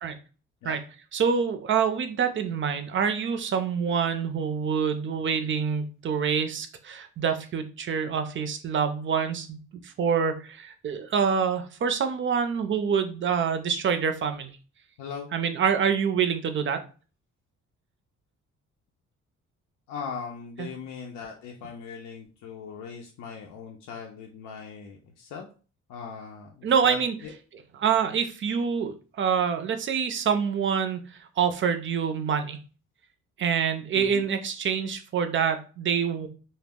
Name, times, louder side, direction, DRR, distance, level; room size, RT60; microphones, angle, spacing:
voice 1, 1.1-14.5 15.3-16.8 20.6-20.7 26.6-27.2 27.7-31.0 31.4-32.6 33.4-36.3, right 7 dB, 40° right, 8 dB, 0.4 m, -26 dB
voice 2, 15.0-15.3 19.9-25.5 25.9-27.0 27.2-27.3 33.9-34.2, left 6 dB, 85° left, 0 dB, 0.5 m, -39 dB
2.1 x 2.0 x 3.5 m, 0.37 s
cardioid pair, 90°, 30 cm